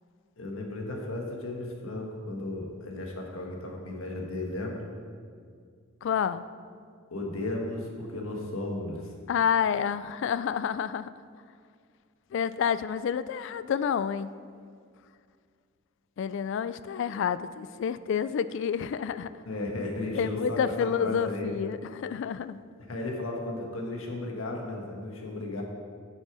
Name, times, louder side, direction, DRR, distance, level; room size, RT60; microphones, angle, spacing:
voice 1, 0.4-4.9 7.1-9.0 19.4-21.5 22.9-25.6, left 2 dB, 80° left, 0 dB, 1.4 m, -34 dB
voice 2, 6.0-6.4 9.3-11.1 12.3-14.3 16.2-19.3 20.1-22.6, left 7 dB, 60° left, 15 dB, 0.3 m, -29 dB
9.4 x 6.3 x 4.9 m, 2.1 s
head